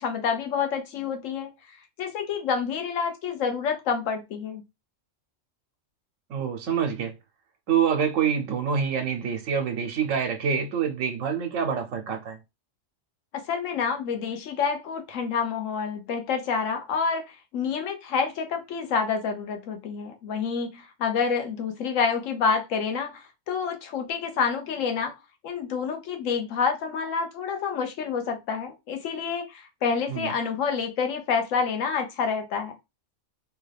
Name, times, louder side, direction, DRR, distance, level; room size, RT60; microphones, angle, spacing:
voice 1, 0.0-1.5 2.0-4.6 13.3-17.2 17.5-25.1 25.4-32.7, left 6 dB, 85° left, 1.1 m, -28 dB
voice 2, 6.3-7.1 7.7-12.4 30.1-30.3, right 7 dB, 85° right, 1.0 m, -26 dB
3.3 x 2.3 x 3.3 m
omnidirectional pair, 1.3 m